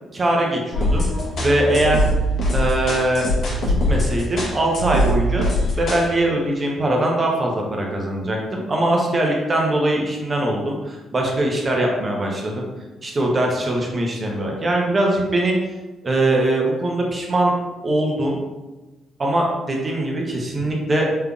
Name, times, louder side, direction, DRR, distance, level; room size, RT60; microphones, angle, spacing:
voice 1, 0.1-1.1 1.4-2.0 2.5-3.3 3.7-5.5 5.7-12.6 13.0-15.6 16.0-17.5 17.8-18.4 19.2-21.1, right 1 dB, 40° right, -1 dB, 0.9 m, -21 dB
sound 1, 0.7-6.1, equal, 60° left, 1.0 m, -22 dB
3.7 x 3.3 x 2.4 m, 1.1 s
hypercardioid pair, 50°, 0 cm